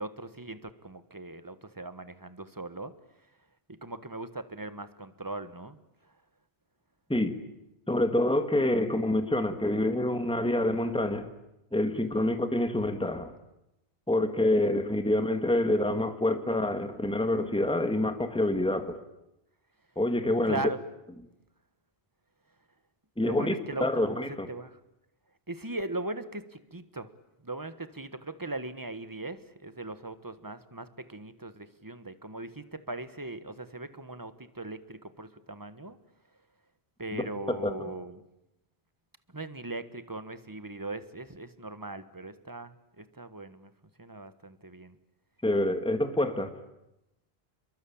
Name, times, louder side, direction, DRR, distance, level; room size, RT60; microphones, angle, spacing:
voice 1, 0.0-2.9 3.7-5.8 6.0-6.1 11.9-12.4 20.4-20.8 23.2-24.2 24.5-24.8 25.5-27.1 27.4-36.0 37.0-38.2 39.3-43.7 44.0-45.0, right 2 dB, 20° right, 12 dB, 1.4 m, -39 dB
voice 2, 7.9-11.3 11.7-13.3 14.1-19.0 20.0-20.6 23.2-24.5 37.1-37.2 37.6-37.7 45.4-46.5, left 1 dB, 5° left, 7 dB, 1.8 m, -27 dB
29.0 x 23.0 x 8.7 m, 0.90 s
omnidirectional pair, 1.0 m